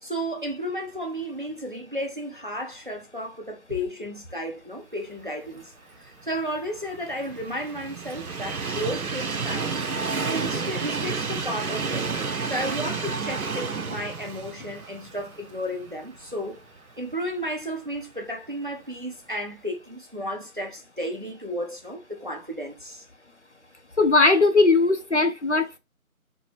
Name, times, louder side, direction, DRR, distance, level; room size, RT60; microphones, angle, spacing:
voice 1, 0.0-5.7 6.0-9.7 10.2-12.1 12.4-16.6 17.0-23.0, equal, 35° right, 0.7 m, -33 dB
Train, 6.2-16.3 16.8-16.9 18.0-18.1, right 4 dB, 80° right, 0.6 m, -31 dB
voice 2, 24.0-25.8, left 3 dB, 55° left, 0.5 m, -19 dB
4.3 x 2.1 x 3.2 m
figure-of-eight pair, 165°, 43 cm